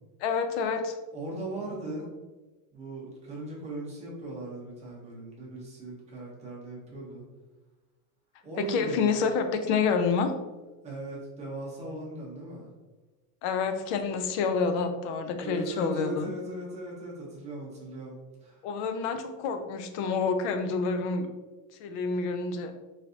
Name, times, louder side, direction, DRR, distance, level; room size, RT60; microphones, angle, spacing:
voice 1, 0.2-1.0 8.6-10.3 13.4-16.3 18.6-21.3 21.8-22.7, left 5 dB, 50° left, 7 dB, 0.5 m, -28 dB
voice 2, 1.1-2.1 2.7-7.2 8.4-9.0 10.8-12.7 15.4-18.1 18.4-18.6, right 2 dB, 15° right, -4 dB, 0.8 m, -38 dB
3.9 x 3.3 x 2.6 m, 1.2 s
supercardioid pair, 160°, 47 cm